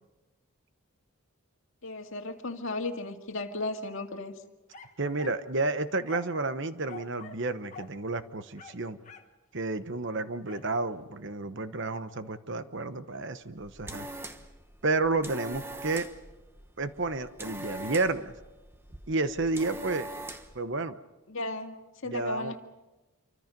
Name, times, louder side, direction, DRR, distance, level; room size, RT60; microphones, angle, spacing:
voice 1, 1.8-4.3 21.3-21.8 22.0-22.6, left 2 dB, 60° left, 4 dB, 2.1 m, -35 dB
sound 1, 4.7-5.5 6.1-6.4 6.9-7.5 7.7-8.0 8.6-9.4 10.5-10.7, left 5 dB, 35° left, 1.7 m, -47 dB
voice 2, 5.0-9.0 9.5-14.1 14.8-16.1 16.8-18.3 19.1-20.1 20.5-21.0 22.0-22.6, right 3 dB, 55° right, 11 dB, 1.1 m, -31 dB
sound 2, 13.5-20.6, right 1 dB, 10° right, 1.2 m, -43 dB
28.0 x 25.0 x 5.4 m, 1.1 s
head